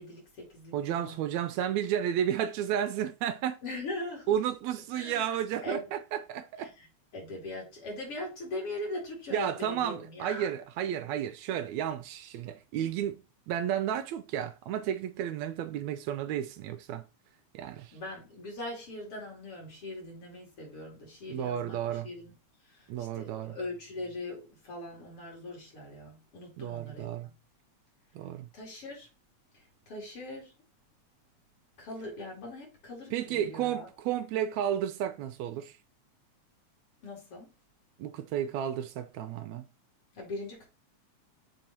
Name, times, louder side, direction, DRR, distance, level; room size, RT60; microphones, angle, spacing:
voice 1, 0.0-1.2 3.6-4.4 4.9-5.9 6.6-6.9 7.1-10.5 17.9-22.3 22.6-27.3 28.5-29.1 29.5-30.5 31.8-33.9 37.0-37.5 40.1-40.7, left 1 dB, 50° left, 3.5 m, -41 dB
voice 2, 0.7-3.6 4.3-6.7 9.3-17.1 17.5-18.0 21.3-22.1 22.9-23.6 26.6-27.3 28.2-28.5 33.1-35.8 38.0-39.7, right 10 dB, 80° right, 1.8 m, -32 dB
6.9 x 4.5 x 4.3 m
omnidirectional pair, 3.3 m